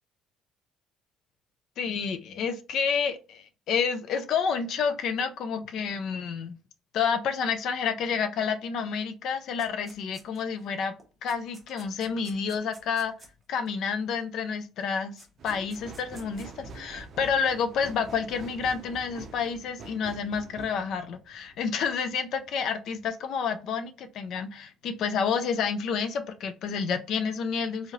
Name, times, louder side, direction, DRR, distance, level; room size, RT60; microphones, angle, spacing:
voice 1, 1.8-6.5 6.9-10.9 11.2-13.1 13.5-27.9, left 6 dB, 60° left, 9 dB, 0.4 m, -29 dB
sound 1, 9.6-10.6 11.0-13.7 14.8-14.9 15.2-16.5, right 2 dB, 15° right, 0.8 m, -53 dB
sound 2, 15.4-21.9 22.4-22.5, right 3 dB, 45° right, 0.5 m, -46 dB
3.1 x 2.7 x 2.4 m, 0.33 s
cardioid pair, 125°, 0 cm